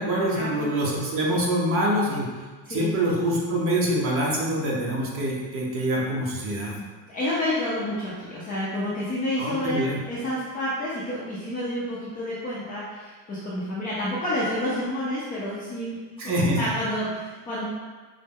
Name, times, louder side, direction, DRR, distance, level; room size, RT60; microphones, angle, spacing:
voice 1, 0.0-2.3 2.7-6.8 9.4-10.0 16.2-16.6, right 1 dB, 30° right, -3 dB, 0.9 m, -25 dB
voice 2, 6.8-17.6, left 1 dB, 20° left, -9 dB, 0.6 m, -29 dB
5.3 x 2.1 x 3.6 m, 1.4 s
cardioid pair, 150°, 40 cm